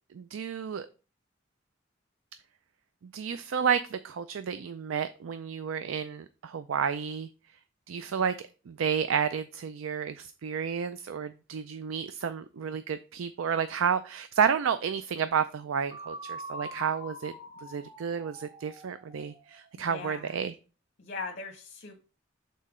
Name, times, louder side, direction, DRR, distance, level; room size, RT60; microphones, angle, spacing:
voice 1, 0.1-0.9 3.1-7.3 7.9-8.3 8.7-17.3 17.6-20.5, right 7 dB, 85° right, 12 dB, 0.4 m, -31 dB
sound 1, 15.9-19.8, right 1 dB, 30° right, 2.5 m, -44 dB
voice 2, 19.7-20.4 21.0-22.0, left 4 dB, 55° left, 3 dB, 0.9 m, -40 dB
6.6 x 4.0 x 4.9 m, 0.35 s
head